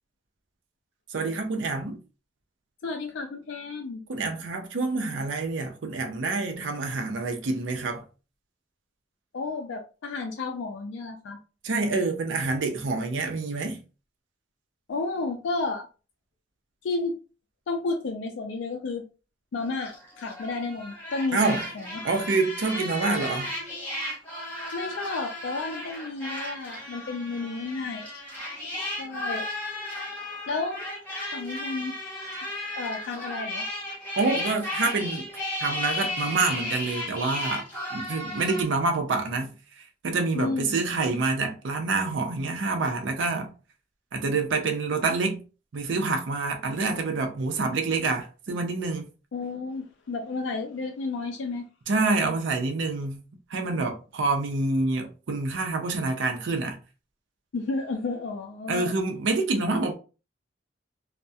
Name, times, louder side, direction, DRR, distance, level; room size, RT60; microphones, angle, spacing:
voice 1, 1.1-2.0 4.1-8.0 11.6-13.8 21.3-21.6 22.0-23.6 34.2-35.2 35.6-37.7 37.9-43.5 44.1-45.4 45.7-49.1 51.9-53.2 53.5-56.8 58.7-59.9, right 3 dB, 90° right, 0.5 m, -27 dB
voice 2, 2.8-4.0 9.3-11.4 14.9-15.9 16.8-17.2 17.7-19.0 19.5-21.4 21.7-22.0 24.7-28.1 29.0-29.4 30.5-30.9 31.3-32.0 32.7-33.7 40.3-40.8 49.3-51.7 57.5-59.0, left 3 dB, 85° left, 0.4 m, -32 dB
sound 1, 19.6-38.6, left 1 dB, 10° left, 0.8 m, -34 dB
2.3 x 2.1 x 2.6 m
head